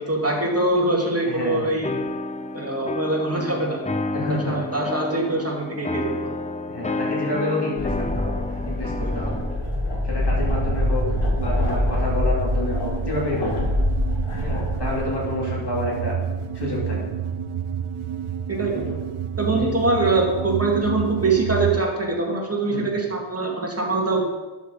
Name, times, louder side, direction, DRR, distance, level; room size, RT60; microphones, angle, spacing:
voice 1, 0.0-1.9 2.5-3.8 4.3-6.3 18.5-19.1 19.4-24.2, right 2 dB, 30° right, -1 dB, 2.3 m, -23 dB
voice 2, 1.2-1.6 4.1-4.6 6.7-8.4 8.7-9.4 10.0-11.0 11.4-13.5 14.4-16.2 16.5-17.1 18.7-19.0 19.6-19.7 22.7-22.9, left 2 dB, 55° left, -4 dB, 2.9 m, -29 dB
sound 1, 1.8-9.6, left 2 dB, 15° left, 0.4 m, -30 dB
sound 2, 7.8-15.0, left 1 dB, 80° left, 1.9 m, -25 dB
sound 3, 10.3-21.8, right 8 dB, 80° right, 0.6 m, -29 dB
11.5 x 6.3 x 4.0 m, 1.2 s
wide cardioid pair, 45°, 50 cm